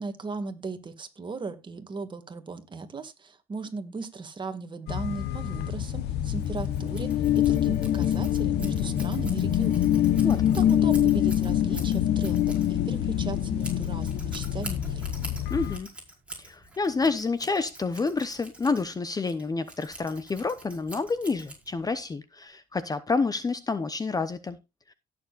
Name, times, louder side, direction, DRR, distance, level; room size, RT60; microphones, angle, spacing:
voice 1, 0.0-7.1 7.3-10.1 10.5-15.1, right 4 dB, 30° right, 2.0 m, -37 dB
sound 1, 4.9-15.8, left 11 dB, 80° left, 0.9 m, -32 dB
sound 2, 5.8-15.1, left 11 dB, 55° left, 1.1 m, -25 dB
Scissors, 6.4-22.0, right 2 dB, 5° right, 5.1 m, -46 dB
voice 2, 15.5-15.9 16.4-24.6 24.9-25.0, left 4 dB, 20° left, 0.8 m, -29 dB
17.5 x 7.2 x 2.5 m
cardioid pair, 110°, 17 cm